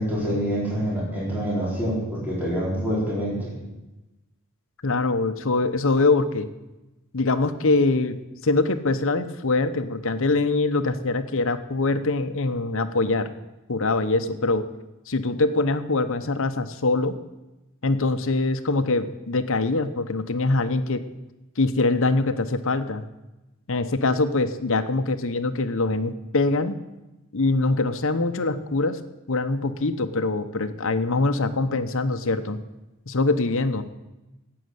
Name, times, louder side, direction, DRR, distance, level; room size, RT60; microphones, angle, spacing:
voice 1, 0.0-3.5, equal, 10° right, -6 dB, 4.2 m, -26 dB
voice 2, 4.8-6.5 7.1-13.3 13.7-14.6 15.1-17.1 17.8-21.0 21.6-23.0 23.7-26.8 27.3-29.0 29.3-32.6 33.1-33.8, left 3 dB, 65° left, 9 dB, 0.9 m, -23 dB
12.0 x 8.7 x 8.0 m, 1.0 s
head